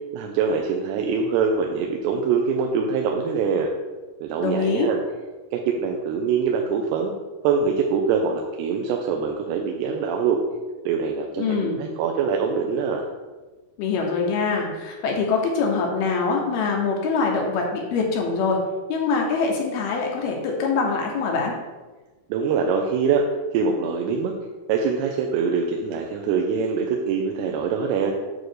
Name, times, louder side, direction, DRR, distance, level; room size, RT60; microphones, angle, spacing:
voice 1, 0.1-3.7 4.2-5.0 5.5-7.1 7.4-10.4 10.9-13.0 22.3-23.2 23.5-24.3 24.7-28.1, right 5 dB, 90° right, 1 dB, 2.7 m, -24 dB
voice 2, 4.4-4.9 11.4-11.8 13.8-18.6 18.9-21.6, left 4 dB, 75° left, 0 dB, 2.7 m, -24 dB
9.1 x 3.1 x 6.4 m, 1.2 s
omnidirectional pair, 4.7 m